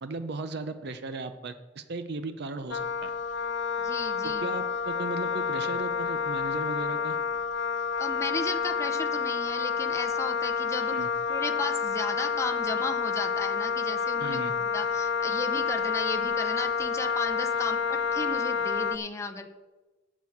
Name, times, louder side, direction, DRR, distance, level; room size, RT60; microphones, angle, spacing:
voice 1, 0.0-3.1 4.2-7.2 10.9-11.1 14.2-14.5, right 3 dB, 60° right, 10 dB, 0.6 m, -36 dB
Wind instrument woodwind instrument, 2.7-19.0, left 6 dB, 65° left, 0.6 m, -29 dB
voice 2, 3.8-4.5 8.0-11.0 11.3-19.5, left 3 dB, 15° left, 5 dB, 0.6 m, -35 dB
8.8 x 6.2 x 8.4 m, 1.2 s
head